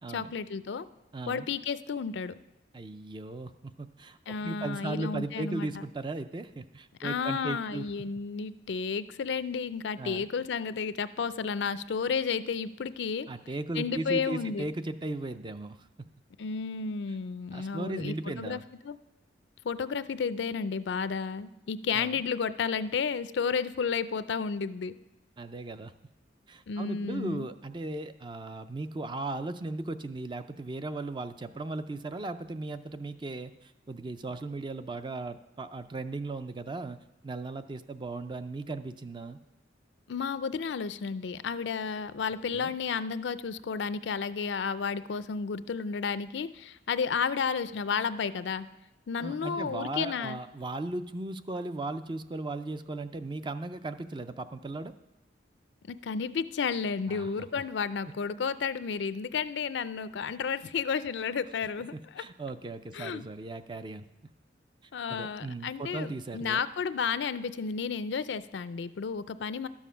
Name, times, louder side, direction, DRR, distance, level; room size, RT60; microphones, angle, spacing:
voice 1, 0.1-0.9 1.3-2.3 4.3-5.8 7.0-13.3 13.7-14.7 16.4-18.6 18.8-19.0 19.6-24.9 26.7-27.5 40.1-48.7 49.1-50.4 55.9-62.2 62.9-63.2 64.9-69.7, left 5 dB, 75° left, 14 dB, 0.4 m, -32 dB
voice 2, 1.1-1.5 2.7-7.9 10.0-10.3 13.3-16.1 17.5-18.6 21.9-22.2 25.4-25.9 26.5-37.0 37.2-39.4 42.5-42.7 49.2-54.9 57.1-57.5 61.9-64.1 65.1-66.6, right 2 dB, 25° right, 10 dB, 0.4 m, -37 dB
12.0 x 7.2 x 5.6 m, 0.95 s
head